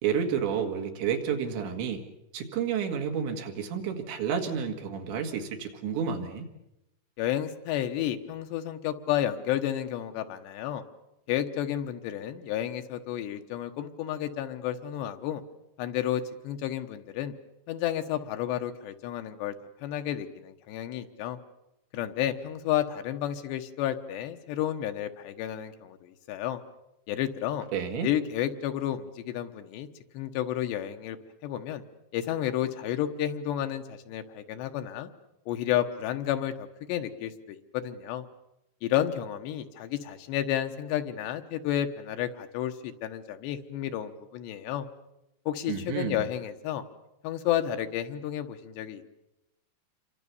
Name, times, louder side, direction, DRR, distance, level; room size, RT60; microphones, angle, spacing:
voice 1, 0.0-2.0 2.3-6.5 27.7-28.1 45.7-46.3, right 7 dB, 80° right, 4 dB, 4.4 m, -30 dB
voice 2, 7.2-10.8 11.3-15.4 15.8-17.3 17.7-19.5 19.8-21.4 21.9-26.6 27.1-27.7 28.0-29.9 30.1-31.2 31.4-31.8 32.1-35.1 35.5-38.2 38.8-44.9 45.5-46.8 47.2-49.0, left 11 dB, 80° left, 7 dB, 3.3 m, -31 dB
28.0 x 24.0 x 7.0 m, 0.88 s
omnidirectional pair, 5.1 m